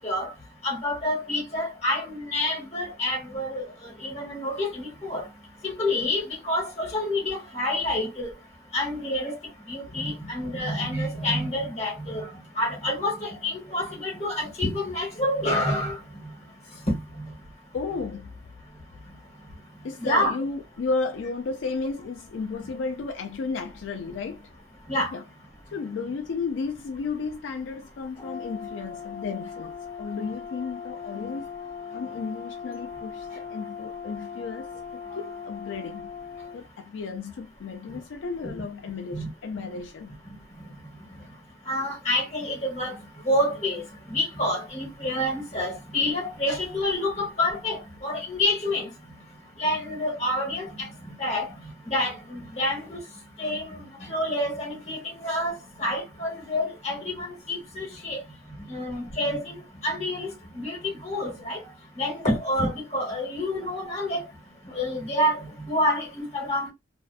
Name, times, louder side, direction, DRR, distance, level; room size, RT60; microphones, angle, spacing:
voice 1, 0.6-3.6 4.0-5.2 5.6-8.3 8.7-9.4 9.7-12.3 12.6-16.0 16.9-17.0 20.0-20.4 24.9-25.1 39.1-39.3 41.7-43.0 43.3-48.9 49.6-51.5 51.9-53.0 53.4-55.5 55.8-58.2 58.7-59.5 59.8-60.3 60.5-60.8 61.0-61.6 62.0-64.2 64.7-65.4 65.7-66.7, left 1 dB, 35° left, 1.2 m, -28 dB
voice 2, 17.7-18.3 19.8-24.5 25.1-25.2 25.7-31.5 31.9-36.1 36.5-40.2, left 4 dB, 75° left, 0.4 m, -33 dB
Brass instrument, 28.2-36.6, left 6 dB, 15° left, 0.5 m, -39 dB
2.5 x 2.2 x 2.4 m
head